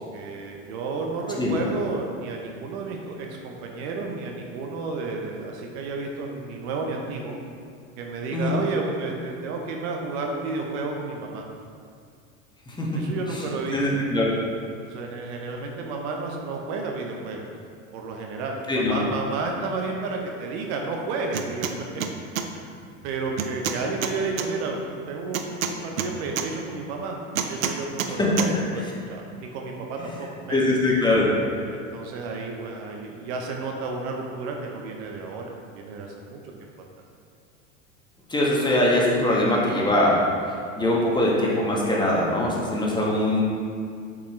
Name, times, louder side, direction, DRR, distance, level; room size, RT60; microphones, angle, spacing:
voice 1, 0.1-7.4 8.0-11.4 12.9-13.8 14.7-17.5 17.9-21.7 22.3-22.7 23.0-24.8 25.1-27.2 27.5-30.6 31.7-36.7, right 3 dB, 55° right, 1 dB, 0.8 m, -32 dB
voice 2, 13.7-14.2 18.7-19.0 28.2-28.3 28.8-28.9 30.5-31.3 38.3-40.2 40.8-43.4, left 1 dB, 10° left, -4 dB, 1.3 m, -22 dB
sound 1, 21.3-21.7 22.0-22.5 23.4-24.5 25.3-26.5 27.4-28.1 28.4-28.5, right 8 dB, 80° right, 0.6 m, -27 dB
6.7 x 5.0 x 3.1 m, 2.3 s
hypercardioid pair, 80°, 40 cm